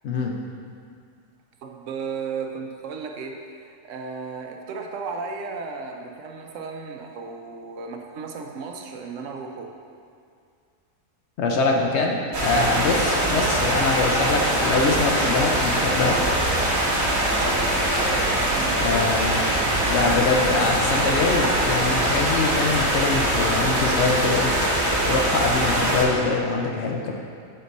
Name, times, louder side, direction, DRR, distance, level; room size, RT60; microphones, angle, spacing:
voice 1, 0.0-0.4 11.4-16.2 18.8-19.5 19.8-24.5 25.1-27.1, left 3 dB, 65° left, 1 dB, 0.8 m, -24 dB
voice 2, 1.6-9.7 18.2-18.9, right 5 dB, 70° right, 2 dB, 0.9 m, -34 dB
sound 1, 12.3-26.0, right 1 dB, 55° right, 1.3 m, -22 dB
6.4 x 4.4 x 4.0 m, 2.3 s
omnidirectional pair, 1.4 m